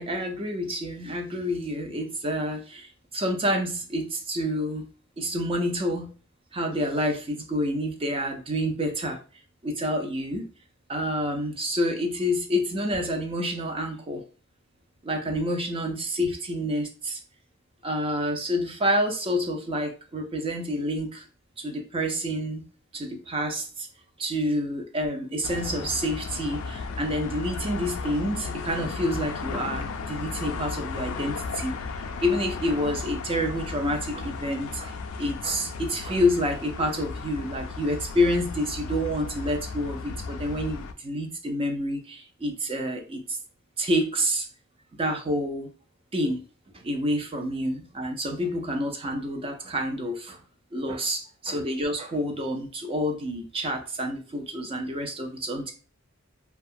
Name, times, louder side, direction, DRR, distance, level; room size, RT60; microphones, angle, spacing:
voice 1, 0.0-4.9 5.2-6.2 6.5-9.2 9.6-10.5 10.9-14.2 15.0-17.2 17.8-21.3 21.6-22.7 22.9-23.9 24.2-31.8 32.1-43.4 43.8-44.5 45.0-45.7 46.1-46.4 46.7-50.4 50.7-55.7, equal, 25° right, 3 dB, 0.4 m, -28 dB
sound 1, 25.4-40.9, left 4 dB, 80° left, 0.3 m, -35 dB
2.7 x 2.3 x 2.5 m, 0.37 s
head